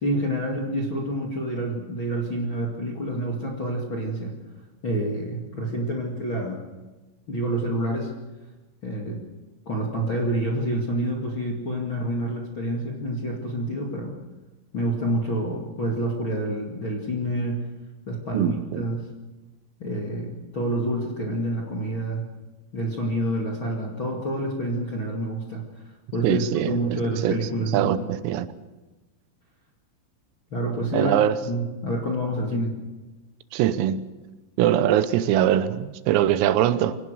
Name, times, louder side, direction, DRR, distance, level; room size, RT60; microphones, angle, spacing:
voice 1, 0.0-4.3 4.8-6.6 7.3-8.1 8.8-9.2 9.6-14.2 14.7-17.6 18.1-19.1 19.8-22.3 22.7-25.6 26.1-28.1 30.5-31.1 31.4-32.7, right 1 dB, 45° left, 1.6 m, -28 dB
voice 2, 18.3-18.9 26.2-28.5 30.9-31.4 32.5-32.7 33.5-34.0 34.6-37.0, right 11 dB, 90° right, 3.7 m, -23 dB
24.5 x 18.0 x 6.5 m
omnidirectional pair, 5.9 m